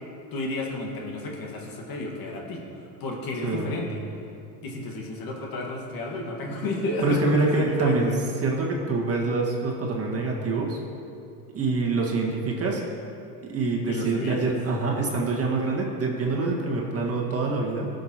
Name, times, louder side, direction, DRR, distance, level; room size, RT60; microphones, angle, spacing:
voice 1, 0.3-4.0 4.6-8.2 13.9-14.4, left 2 dB, 45° left, 0 dB, 1.7 m, -32 dB
voice 2, 3.4-3.8 7.0-8.1 8.4-10.8 11.5-12.8 13.4-17.9, right 3 dB, 30° right, -2 dB, 1.7 m, -25 dB
15.5 x 6.6 x 3.0 m, 2.6 s
hypercardioid pair, 90°, 49 cm